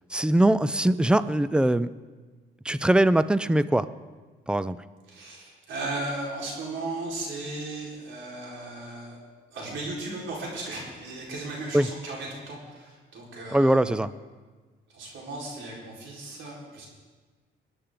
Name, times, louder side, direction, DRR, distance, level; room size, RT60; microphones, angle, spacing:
voice 1, 0.1-1.9 2.6-3.9 4.5-4.8 11.7-11.9 13.5-14.1, right 1 dB, 5° right, 15 dB, 0.4 m, -21 dB
voice 2, 5.1-9.2 9.5-14.0 14.9-16.9, right 2 dB, 75° right, -3 dB, 4.4 m, -36 dB
21.0 x 10.5 x 3.8 m, 1.4 s
cardioid pair, 90°, 20 cm